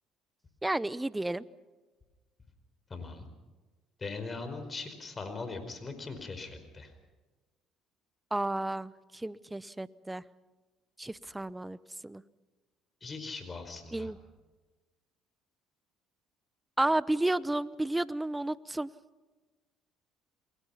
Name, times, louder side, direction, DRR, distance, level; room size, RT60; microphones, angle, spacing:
voice 1, 0.6-1.4 8.3-10.2 11.0-11.8 12.0-12.2 13.9-14.2 16.8-18.9, right 1 dB, 10° right, 18 dB, 0.8 m, -31 dB
voice 2, 2.9-3.3 4.0-6.9 13.0-14.1, left 3 dB, 30° left, 8 dB, 5.0 m, -40 dB
29.0 x 21.0 x 5.8 m, 1.2 s
supercardioid pair, 85°, 0 cm